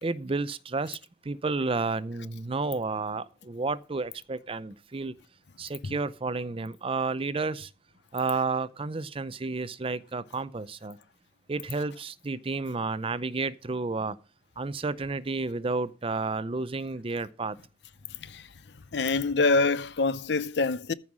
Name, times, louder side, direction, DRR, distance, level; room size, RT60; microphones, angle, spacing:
voice 1, 0.0-1.0 1.2-5.1 5.6-7.7 8.1-11.0 11.5-14.2 14.6-17.6, right 3 dB, 30° right, 0.5 m, -31 dB
voice 2, 18.9-20.9, left 3 dB, 70° left, 0.6 m, -25 dB
14.0 x 5.5 x 6.2 m
head